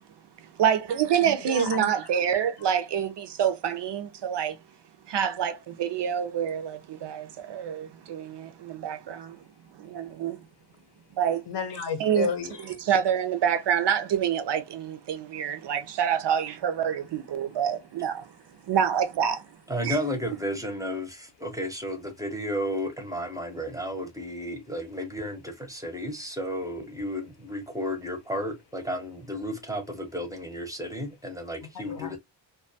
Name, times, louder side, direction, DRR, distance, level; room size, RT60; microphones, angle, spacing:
voice 1, 0.6-4.6 5.1-9.4 9.8-10.4 11.2-11.4 12.0-12.3 12.8-18.3 18.7-19.4 19.8-20.0, right 8 dB, 60° right, 0.5 m, -27 dB
voice 2, 1.4-1.9 11.5-12.8 31.9-32.2, left 5 dB, 60° left, 0.7 m, -32 dB
voice 3, 19.7-32.2, equal, 5° right, 0.6 m, -33 dB
2.2 x 2.2 x 2.6 m
wide cardioid pair, 125°, 47 cm